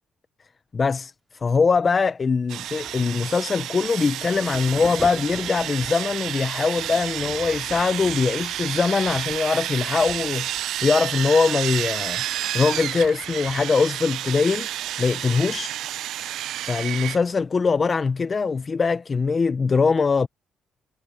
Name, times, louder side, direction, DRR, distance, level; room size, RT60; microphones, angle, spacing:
voice 1, 0.7-1.1 1.4-14.7 15.0-15.7 16.2-16.4 16.7-20.3, left 5 dB, 35° left, 0.6 m, -22 dB
Sawing, 2.5-17.2, right 13 dB, 80° right, 0.3 m, -30 dB
Thunder, 2.6-17.6 18.4-18.6, right 2 dB, 15° right, 4.9 m, -46 dB
cardioid pair, 90°, 0 cm